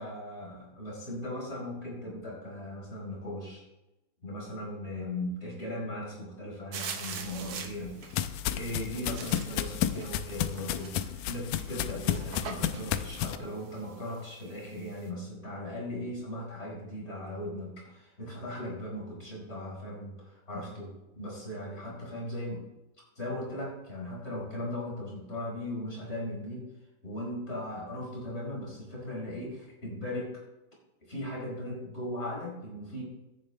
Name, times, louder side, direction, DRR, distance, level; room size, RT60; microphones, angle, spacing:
voice 1, 0.0-3.6 4.2-7.9 8.3-22.6 23.2-26.7 27.0-30.4 31.0-33.0, left 1 dB, 20° left, -3 dB, 5.3 m, -38 dB
sound 1, 6.7-15.1, right 6 dB, 55° right, 1.8 m, -44 dB
sound 2, 7.2-13.4, left 11 dB, 85° left, 2.2 m, -32 dB
17.0 x 10.5 x 3.4 m, 0.95 s
omnidirectional pair, 3.6 m